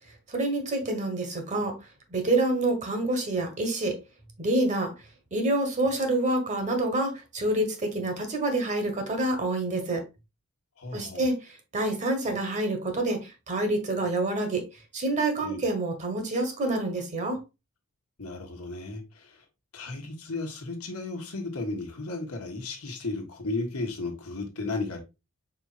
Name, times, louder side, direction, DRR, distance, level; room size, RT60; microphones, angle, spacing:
voice 1, 0.3-1.7 2.1-3.9 4.4-4.9 5.3-10.0 10.9-14.6 14.9-17.4, right 2 dB, 35° right, 1.2 m, -27 dB
voice 2, 10.8-11.3 15.4-15.6 18.2-19.4 19.7-25.0, left 3 dB, 80° left, 1.3 m, -34 dB
5.0 x 4.2 x 2.4 m
head